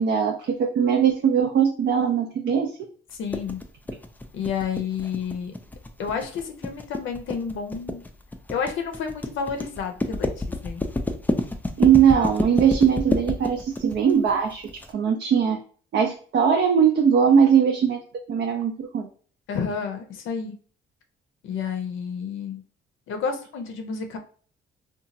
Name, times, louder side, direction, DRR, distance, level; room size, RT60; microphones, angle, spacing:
voice 1, 0.0-2.8 11.8-14.6 14.9-15.6 15.9-18.0 18.3-19.1, right 7 dB, 60° right, 3 dB, 0.5 m, -20 dB
voice 2, 3.1-3.6 4.3-5.5 6.0-8.0 8.5-10.8 19.5-20.6 21.4-22.6 23.1-24.2, left 6 dB, 75° left, 5 dB, 0.5 m, -30 dB
sound 1, 3.3-14.9, left 2 dB, 10° left, 0.3 m, -29 dB
2.8 x 2.3 x 2.6 m, 0.43 s
cardioid pair, 90°, 20 cm